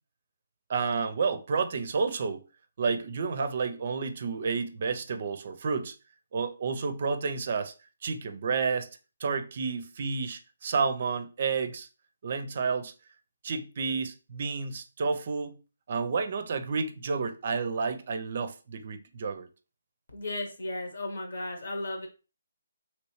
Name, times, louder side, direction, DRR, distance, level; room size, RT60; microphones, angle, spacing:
voice 1, 0.7-2.4 2.8-5.9 6.3-7.7 8.0-8.9 9.2-11.9 12.2-12.9 13.4-15.6 15.9-19.5, right 5 dB, 50° right, 0.5 m, -30 dB
voice 2, 20.1-22.1, left 2 dB, 65° left, 1.1 m, -35 dB
3.1 x 3.0 x 3.0 m
hypercardioid pair, 155°, 0 cm